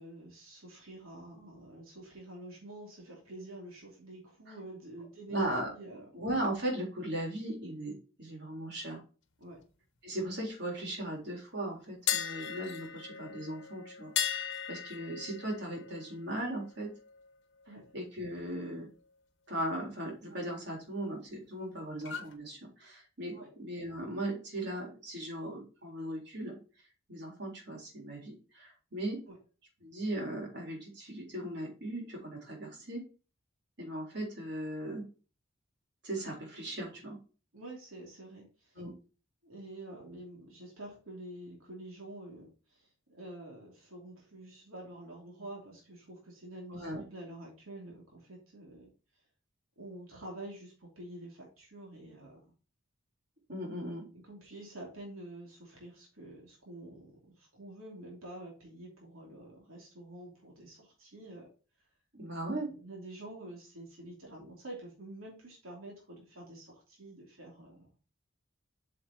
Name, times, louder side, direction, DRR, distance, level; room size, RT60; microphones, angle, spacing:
voice 1, 0.0-5.4 5.7-6.0 9.4-9.6 17.7-17.9 23.3-23.5 29.3-29.4 37.5-38.8 39.4-48.9 49.8-52.5 54.1-61.5 62.6-67.9, right 1 dB, 85° right, -1 dB, 2.8 m, -48 dB
voice 2, 5.3-5.7 6.1-9.0 10.0-14.1 14.7-16.9 17.9-18.9 19.5-26.6 27.1-29.2 29.8-33.0 33.8-35.0 36.0-37.2 38.8-38.9 46.7-47.0 53.5-54.1 62.1-62.7, right 1 dB, 55° right, -1 dB, 3.8 m, -37 dB
sound 1, 12.1-18.0 18.3-18.5 22.0-22.3, left 9 dB, 55° left, 1.2 m, -38 dB
8.0 x 6.6 x 2.8 m, 0.35 s
head